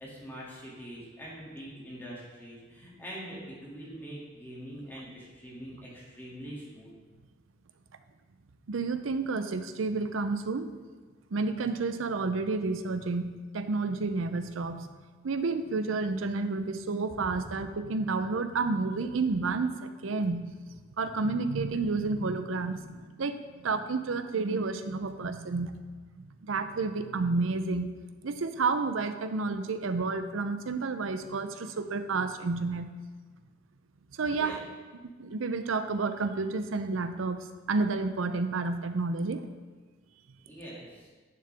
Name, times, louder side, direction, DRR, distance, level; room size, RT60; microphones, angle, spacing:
voice 1, 0.0-6.9 34.3-34.6 40.5-41.1, equal, 10° left, -6 dB, 2.3 m, -44 dB
voice 2, 8.7-10.7 11.3-14.9 15.2-20.5 21.0-25.8 26.2-27.9 28.2-33.0 34.1-34.6 35.2-39.4, right 3 dB, 80° right, 10 dB, 0.6 m, -30 dB
10.5 x 6.7 x 3.4 m, 1.4 s
head